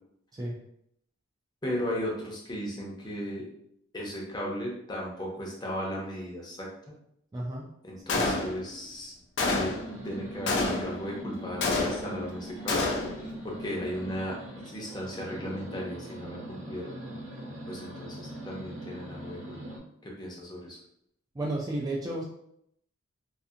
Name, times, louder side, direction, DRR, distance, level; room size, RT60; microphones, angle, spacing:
voice 1, 1.6-3.5 3.9-6.7 7.8-9.8 10.0-14.4 14.7-16.9 17.7-19.6 20.0-20.8, equal, 20° left, -3 dB, 0.6 m, -36 dB
voice 2, 7.3-7.7 8.1-8.3 21.3-22.2, right 1 dB, 20° right, -3 dB, 0.3 m, -32 dB
Gunshot gunfire, 8.1-8.8 9.4-9.9 10.5-11.1 11.6-12.3 12.7-13.3, left 3 dB, 65° left, 0.5 m, -28 dB
sound 1, 9.5-19.8, right 1 dB, 85° right, 0.8 m, -41 dB
2.5 x 2.4 x 2.6 m, 0.73 s
head